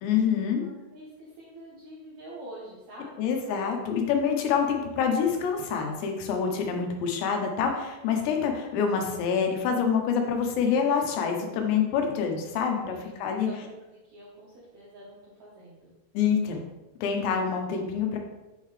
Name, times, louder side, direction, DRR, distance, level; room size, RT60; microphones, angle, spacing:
voice 1, 0.0-0.7 3.2-13.5 16.1-16.6 17.0-18.2, left 6 dB, 85° left, 3 dB, 3.0 m, -26 dB
voice 2, 0.6-3.4 12.9-13.1 13.4-15.9 16.4-16.6, right 1 dB, 85° right, -6 dB, 1.5 m, -46 dB
8.1 x 3.7 x 3.2 m, 1.0 s
omnidirectional pair, 4.9 m